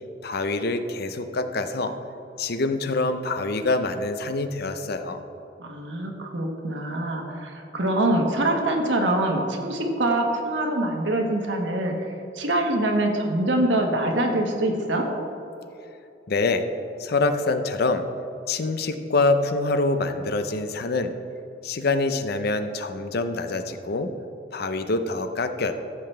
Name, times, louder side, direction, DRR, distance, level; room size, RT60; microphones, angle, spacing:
voice 1, 0.2-1.9 2.4-5.2 16.3-16.6 17.0-18.1 18.5-21.1 21.6-24.1 24.5-25.7, left 3 dB, 60° left, 8 dB, 0.7 m, -25 dB
voice 2, 5.6-11.9 12.3-15.1, right 1 dB, 75° right, 2 dB, 1.5 m, -24 dB
14.5 x 7.9 x 3.4 m, 2.7 s
head